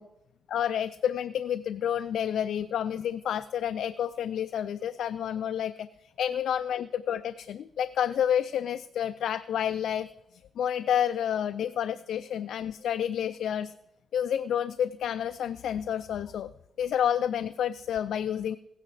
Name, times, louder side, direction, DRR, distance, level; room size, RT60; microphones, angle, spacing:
voice 1, 0.5-10.1 10.6-13.7 14.1-16.5 16.8-18.6, left 9 dB, 80° left, 12 dB, 0.4 m, -29 dB
16.0 x 9.9 x 4.9 m, 0.89 s
cardioid pair, 125°, 0 cm